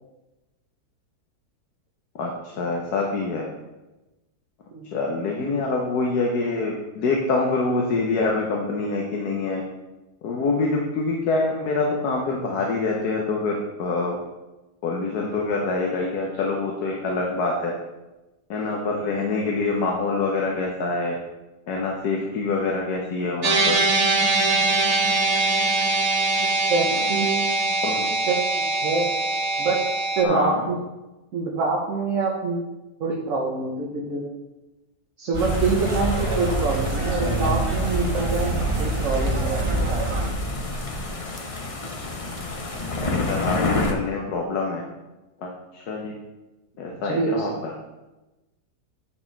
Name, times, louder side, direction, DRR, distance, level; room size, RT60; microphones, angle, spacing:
voice 1, 2.2-3.5 4.9-9.6 10.2-14.2 14.8-17.7 18.5-21.2 21.7-23.8 26.9-27.0 27.8-28.1 30.2-30.7 43.3-44.8 45.4-46.2 46.8-47.7, left 3 dB, 75° left, -1 dB, 1.5 m, -25 dB
sound 1, 23.4-30.2, right 2 dB, 80° right, 0.3 m, -22 dB
voice 2, 26.4-27.4 28.3-28.4 28.8-29.1 29.6-29.8 30.2-30.8 31.3-32.6 33.0-34.3 35.2-38.5 38.8-39.9 47.0-47.5, right 4 dB, 55° right, -1 dB, 1.3 m, -25 dB
sound 2, 35.3-40.3, right 2 dB, 30° right, 0.5 m, -25 dB
sound 3, 35.4-43.9, left 2 dB, 35° left, 0.5 m, -30 dB
9.6 x 4.5 x 4.5 m, 1.1 s
omnidirectional pair, 1.7 m